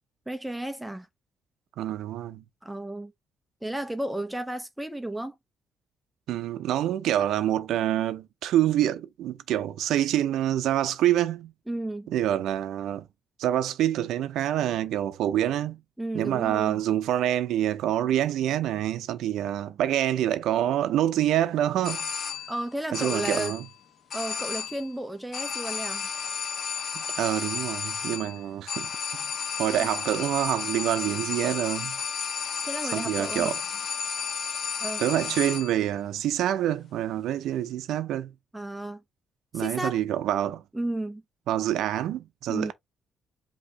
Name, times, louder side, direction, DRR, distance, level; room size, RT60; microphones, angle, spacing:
voice 1, 0.3-1.1 2.6-3.1 3.6-5.3 11.7-12.1 16.0-16.8 22.5-23.5 24.1-26.1 29.8-29.9 32.6-33.5 34.8-35.0 38.5-39.0 39.5-40.0 40.7-41.2 42.5-42.7, right 1 dB, 5° right, 0.8 m, -33 dB
voice 2, 1.8-2.4 6.3-11.5 12.1-13.1 13.4-15.8 16.1-22.1 22.9-23.7 26.9-28.9 29.2-29.3 29.6-32.0 32.9-33.6 35.0-38.3 39.5-40.6 41.5-42.7, right 12 dB, 80° right, 0.7 m, -26 dB
sound 1, 21.8-22.7 22.9-23.8 24.1-24.9 25.3-35.9, left 6 dB, 60° left, 1.1 m, -33 dB
5.2 x 3.0 x 3.4 m
cardioid pair, 90°, 0 cm